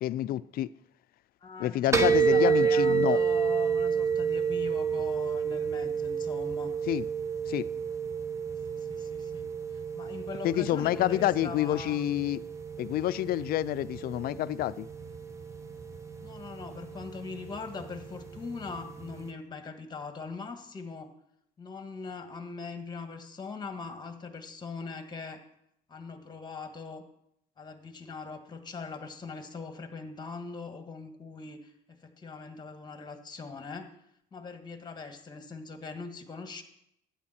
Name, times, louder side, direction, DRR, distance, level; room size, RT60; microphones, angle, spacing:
voice 1, 0.0-0.7 1.6-3.2 6.9-7.0 7.5-7.7 10.4-12.4 12.8-14.9, left 13 dB, 60° left, 0.4 m, -28 dB
voice 2, 1.4-6.7 8.5-12.0 16.2-21.1 21.6-25.4 25.9-27.0 27.6-33.9 34.3-36.6, left 4 dB, 25° left, 1.5 m, -41 dB
sound 1, 1.9-19.3, right 6 dB, 15° right, 1.1 m, -30 dB
13.0 x 9.3 x 4.3 m
cardioid pair, 110°, 17 cm